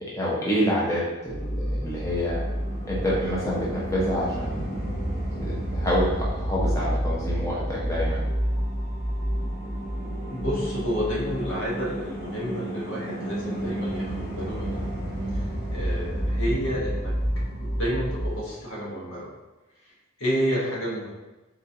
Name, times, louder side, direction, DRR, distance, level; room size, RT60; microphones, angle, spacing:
voice 1, 0.0-2.4 2.9-4.8 5.4-8.2, equal, 15° left, -6 dB, 0.7 m, -27 dB
sound 1, 1.3-18.4, equal, 35° left, 1.4 m, -29 dB
voice 2, 10.3-14.9 15.3-17.1 17.6-19.3 19.8-21.1, equal, 65° left, -5 dB, 1.2 m, -30 dB
4.0 x 3.9 x 2.7 m, 1.1 s
head